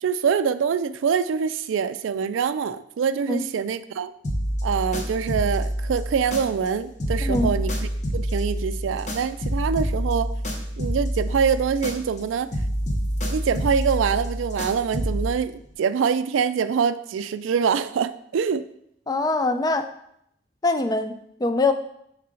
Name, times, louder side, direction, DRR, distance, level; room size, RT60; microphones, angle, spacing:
voice 1, 0.0-4.1 4.6-10.3 10.8-12.5 13.2-18.6, right 6 dB, 85° right, 13 dB, 0.3 m, -25 dB
sound 1, 4.2-6.7 7.0-12.2 12.5-15.3, equal, 40° left, 0.9 m, -27 dB
voice 2, 7.2-7.5 19.1-19.9 20.6-21.7, left 3 dB, 20° left, 8 dB, 0.3 m, -23 dB
5.6 x 4.7 x 3.7 m, 0.73 s
head